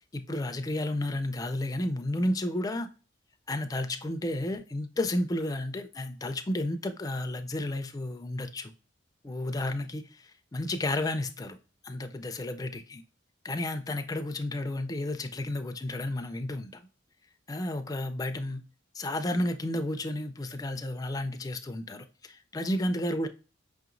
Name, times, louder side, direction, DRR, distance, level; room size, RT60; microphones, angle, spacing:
voice 1, 0.1-2.9 3.5-8.7 9.2-11.6 11.8-13.0 13.4-16.8 17.5-18.6 18.9-23.3, left 1 dB, 20° left, 0.3 m, -32 dB
5.4 x 2.9 x 2.5 m
head